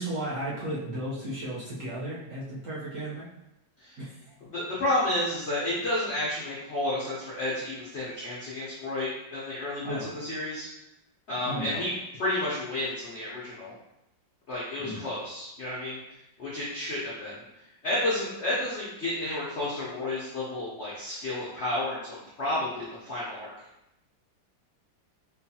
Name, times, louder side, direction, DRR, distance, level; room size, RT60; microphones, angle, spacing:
voice 1, 0.0-3.2 4.0-4.3 9.8-10.1 11.4-11.8 14.8-15.0, right 1 dB, 55° right, -8 dB, 1.0 m, -34 dB
voice 2, 4.4-10.7 11.3-11.9 12.2-13.7 14.5-16.0 16.4-17.4 17.8-23.5, left 1 dB, 65° left, -7 dB, 0.6 m, -31 dB
4.4 x 2.3 x 2.7 m, 0.89 s
omnidirectional pair, 2.0 m